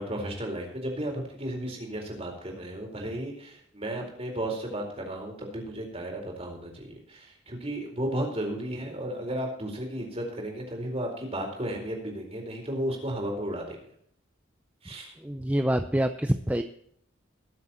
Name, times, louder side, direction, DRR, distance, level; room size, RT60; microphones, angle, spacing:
voice 1, 0.0-13.8 14.8-15.1, right 1 dB, 30° right, 1 dB, 4.3 m, -34 dB
voice 2, 15.2-16.6, right 1 dB, 10° right, 8 dB, 0.6 m, -26 dB
20.5 x 7.6 x 4.3 m, 0.68 s
head